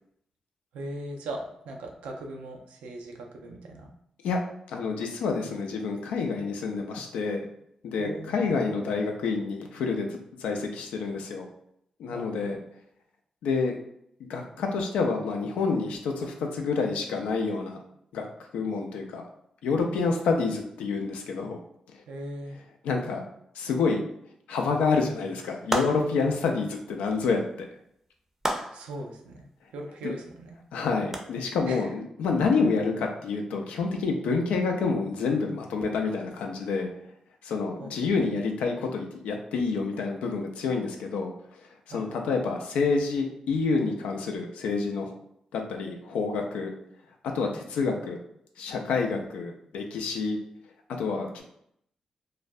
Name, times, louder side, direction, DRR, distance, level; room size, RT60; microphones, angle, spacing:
voice 1, 0.7-3.9 8.0-8.4 12.1-12.6 20.1-20.2 22.1-22.6 28.7-30.6 31.6-31.9 37.8-38.1 41.9-42.2, right 1 dB, 85° right, 2 dB, 0.4 m, -39 dB
voice 2, 4.7-7.5 7.8-11.5 12.0-12.6 13.4-13.8 14.3-17.8 18.1-18.3 18.5-19.2 19.6-21.6 22.8-23.2 23.6-24.0 24.5-27.4 30.7-36.9 37.4-41.3 41.9-45.1 45.5-46.7 47.3-48.2 48.6-50.4 51.0-51.4, left 4 dB, 85° left, 2 dB, 0.4 m, -28 dB
sound 1, 25.7-26.3 28.4-29.0 31.1-31.2, right 1 dB, 15° right, 0.5 m, -30 dB
2.3 x 2.1 x 2.5 m, 0.74 s
supercardioid pair, 45°, 2 cm